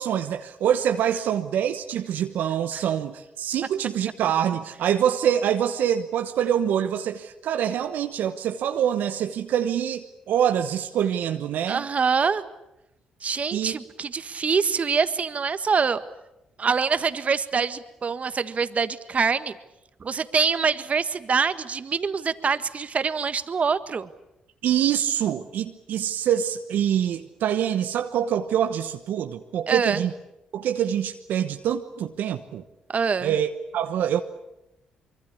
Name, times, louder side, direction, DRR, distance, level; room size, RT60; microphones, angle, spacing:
voice 1, 0.0-11.8 13.5-13.8 24.6-30.1 30.5-32.6 33.2-34.2, right 9 dB, 75° right, 7 dB, 1.1 m, -25 dB
voice 2, 11.7-12.4 13.2-16.0 16.6-19.5 20.0-24.1 29.7-30.0 32.9-33.3, right 5 dB, 45° right, 12 dB, 1.5 m, -25 dB
25.0 x 23.5 x 8.5 m, 0.88 s
hypercardioid pair, 50°, 3 cm